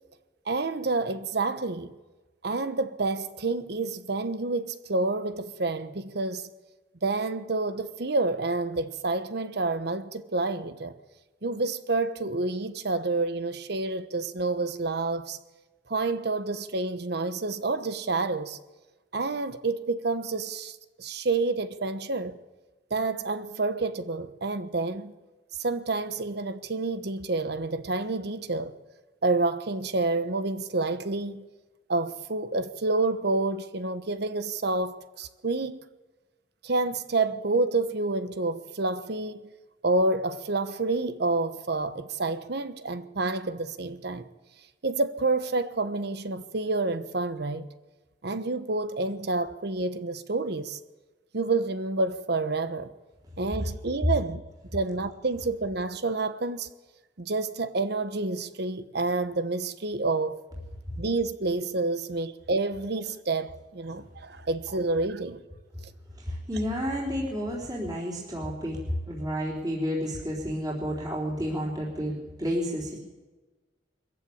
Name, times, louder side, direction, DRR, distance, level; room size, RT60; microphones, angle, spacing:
voice 1, 0.5-1.9 2.4-6.5 7.0-10.9 11.4-15.4 15.9-18.6 19.1-22.4 22.9-25.1 25.6-28.7 29.2-31.5 31.9-35.8 36.6-39.4 39.8-44.3 44.8-47.7 48.2-50.8 51.3-52.9 53.4-54.4 54.7-56.7 57.2-60.4 61.0-65.4 65.8-65.9, right 3 dB, 65° right, 1.1 m, -28 dB
voice 2, 66.2-68.8 69.1-73.0, equal, 20° right, 3.9 m, -31 dB
22.5 x 14.5 x 8.6 m
head